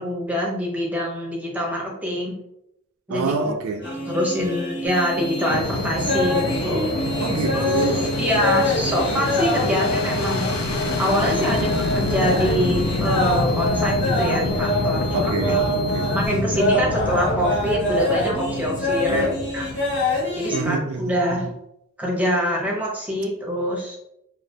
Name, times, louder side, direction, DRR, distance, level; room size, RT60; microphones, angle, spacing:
voice 1, 0.0-2.3 3.1-3.3 3.8-6.9 7.5-10.5 11.0-15.6 16.1-19.7 20.3-21.5 22.0-24.0, equal, 5° right, -3 dB, 0.5 m, -25 dB
voice 2, 3.1-3.9 7.2-8.1 11.4-11.7 15.1-16.2 19.1-19.3 20.5-21.4, right 3 dB, 70° right, 5 dB, 0.3 m, -27 dB
sound 1, 3.8-20.6, left 1 dB, 55° left, 0.8 m, -25 dB
sound 2, 4.9-16.3, left 1 dB, 20° left, 0.8 m, -37 dB
Fixed-wing aircraft airplane, 5.5-20.7, left 2 dB, 85° left, 0.4 m, -27 dB
2.3 x 2.1 x 2.6 m, 0.81 s
head